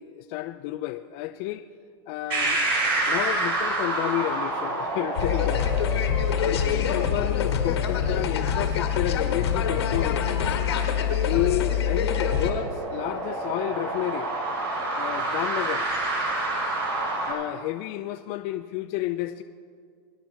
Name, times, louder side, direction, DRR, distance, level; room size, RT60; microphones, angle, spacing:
voice 1, 0.0-1.7 2.1-2.6 3.1-5.6 6.5-10.4 11.2-14.3 14.9-15.9 17.2-19.4, left 15 dB, 50° left, 7 dB, 0.5 m, -31 dB
sound 1, 2.3-17.3, right 2 dB, 65° right, 3.7 m, -30 dB
sound 2, 5.2-12.5, left 8 dB, 80° left, 1.8 m, -25 dB
24.0 x 10.0 x 3.5 m, 2.1 s
hypercardioid pair, 105°, 13 cm